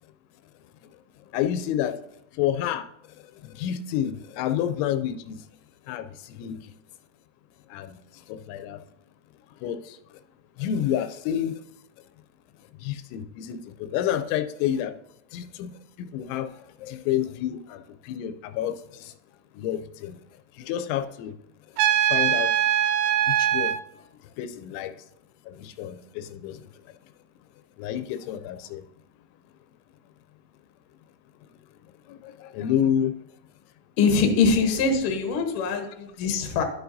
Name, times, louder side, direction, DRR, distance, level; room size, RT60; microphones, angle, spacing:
voice 1, 1.3-1.9 2.4-2.9 3.6-5.4 5.9-6.1 6.4-6.6 7.7-7.9 8.3-8.8 9.6-9.8 10.6-11.5 12.8-13.6 13.9-14.9 15.3-15.7 16.0-16.5 16.8-17.8 18.1-18.7 19.6-20.2 20.7-21.3 22.1-22.5 23.3-23.7 24.4-24.9 25.6-26.6 27.8-28.8 32.5-33.1, left 10 dB, 85° left, 9 dB, 2.9 m, -28 dB
Trumpet, 21.8-23.8, right 10 dB, 85° right, 3.0 m, -22 dB
voice 2, 34.0-36.6, left 4 dB, 70° left, 3 dB, 2.1 m, -23 dB
11.5 x 6.9 x 2.7 m, 0.77 s
omnidirectional pair, 5.3 m